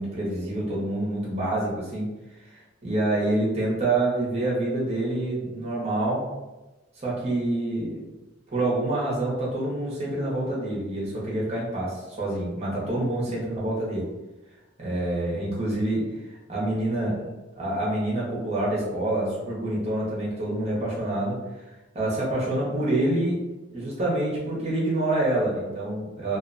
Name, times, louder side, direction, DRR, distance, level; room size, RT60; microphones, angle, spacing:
voice 1, 0.0-2.1 2.5-6.2 7.0-8.0 8.5-14.1 14.8-16.1 16.5-17.3 17.6-21.4 21.9-23.4 23.7-26.4, right 1 dB, 30° right, -6 dB, 0.8 m, -27 dB
2.4 x 2.2 x 2.5 m, 1.1 s
head